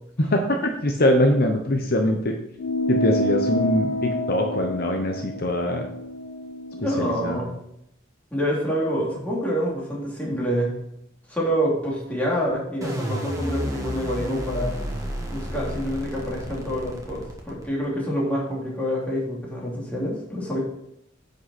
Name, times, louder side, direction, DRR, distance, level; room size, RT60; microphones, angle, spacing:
voice 1, 0.2-2.3 2.9-5.9 6.8-7.4, left 1 dB, 55° left, 3 dB, 0.9 m, -23 dB
sound 1, 2.6-7.4, left 1 dB, 75° left, 0.4 m, -28 dB
voice 2, 6.8-7.5 8.3-10.7 11.3-14.8 15.3-20.6, equal, 10° left, -5 dB, 2.7 m, -27 dB
sound 2, 12.8-17.9, equal, 15° right, 1.6 m, -31 dB
9.8 x 5.3 x 4.3 m, 0.78 s
head